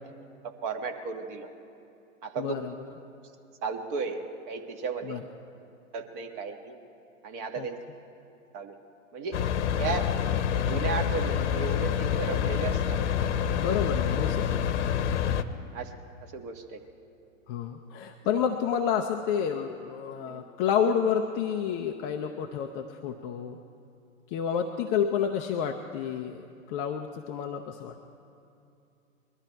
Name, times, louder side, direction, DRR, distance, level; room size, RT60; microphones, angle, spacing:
voice 1, 0.4-1.5 2.2-2.7 3.6-5.2 5.9-6.8 7.2-7.8 8.5-8.8 9.1-9.4 9.8-10.1 10.5-13.0 15.7-15.9 16.3-16.8 20.2-20.4, right 5 dB, 40° right, 5 dB, 1.4 m, -34 dB
voice 2, 2.4-2.7 5.0-5.2 7.6-7.7 13.6-14.6 17.5-23.6 24.3-27.9, left 7 dB, 20° left, 4 dB, 0.4 m, -29 dB
sound 1, 9.3-15.4, left 8 dB, 55° left, 0.9 m, -27 dB
21.5 x 12.5 x 4.5 m, 2.7 s
hypercardioid pair, 110°, 40 cm